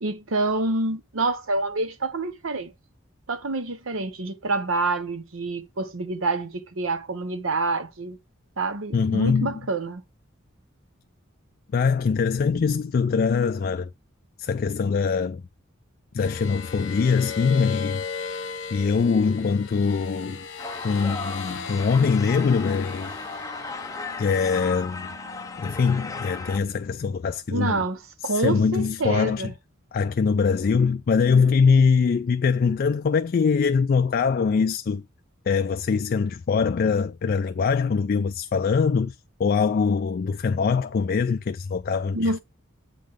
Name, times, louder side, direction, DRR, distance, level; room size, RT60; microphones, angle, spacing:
voice 1, 0.0-2.7 3.3-8.2 8.6-10.0 27.5-29.5 42.1-42.4, right 2 dB, 80° right, 0.9 m, -27 dB
voice 2, 8.9-9.6 11.7-13.9 14.4-15.4 16.1-18.0 18.7-20.5 20.8-23.2 24.2-25.1 25.6-27.8 28.2-29.5 29.9-35.0 35.5-42.4, left 5 dB, 45° left, 0.3 m, -23 dB
sound 1, 16.2-27.0, left 6 dB, 65° left, 1.0 m, -38 dB
sound 2, 20.6-26.6, left 4 dB, 15° left, 0.7 m, -36 dB
8.3 x 3.8 x 4.9 m
head